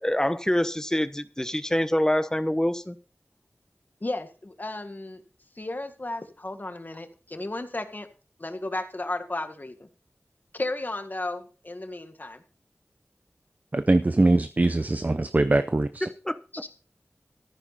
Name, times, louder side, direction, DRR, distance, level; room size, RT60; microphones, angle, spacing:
voice 1, 0.0-3.0 16.2-16.4, left 1 dB, 15° left, 12 dB, 1.0 m, -25 dB
voice 2, 4.0-5.2 5.6-8.1 8.4-9.9 10.5-12.4 16.5-16.7, left 2 dB, 40° left, 8 dB, 1.8 m, -34 dB
voice 3, 13.7-16.1, right 2 dB, 35° right, 11 dB, 0.7 m, -22 dB
14.0 x 10.0 x 4.2 m, 0.36 s
wide cardioid pair, 75°, 5 cm